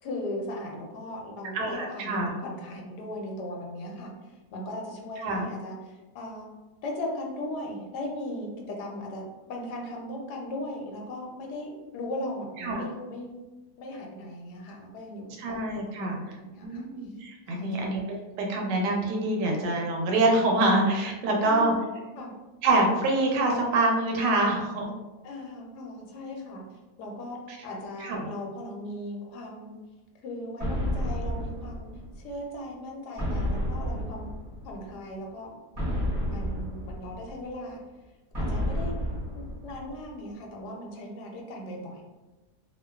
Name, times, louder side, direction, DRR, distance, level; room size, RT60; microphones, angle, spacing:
voice 1, 0.0-6.5 6.8-13.3 13.8-15.6 16.0-16.9 17.5-17.9 21.4-21.8 22.2-22.3 24.6-24.8 25.2-26.6 27.0-29.7 30.2-31.9 32.2-34.3 34.6-35.6 36.2-37.8 38.5-38.9 39.3-42.0, left 1 dB, 80° left, 0 dB, 1.1 m, -38 dB
voice 2, 1.5-2.3 5.2-5.4 12.6-12.8 15.4-16.2 16.6-18.0 18.4-21.7 22.6-24.9 27.5-27.6 28.0-28.3, right 2 dB, 85° right, 0 dB, 1.2 m, -25 dB
sound 1, 30.6-32.4 33.2-34.9 35.8-37.5 38.3-40.1, equal, 35° right, 0.6 m, -31 dB
2.8 x 2.1 x 2.2 m, 1.1 s
omnidirectional pair, 1.8 m